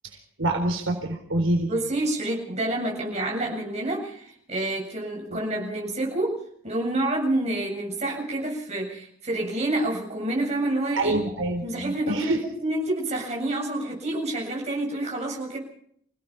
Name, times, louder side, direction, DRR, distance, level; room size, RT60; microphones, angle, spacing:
voice 1, 0.4-1.7 11.0-12.4, right 1 dB, 70° right, 2 dB, 3.8 m, -26 dB
voice 2, 1.7-6.4 6.6-11.2 11.6-12.3 12.6-15.6, right 1 dB, 30° right, -1 dB, 7.6 m, -28 dB
28.0 x 17.5 x 5.9 m, 0.67 s
head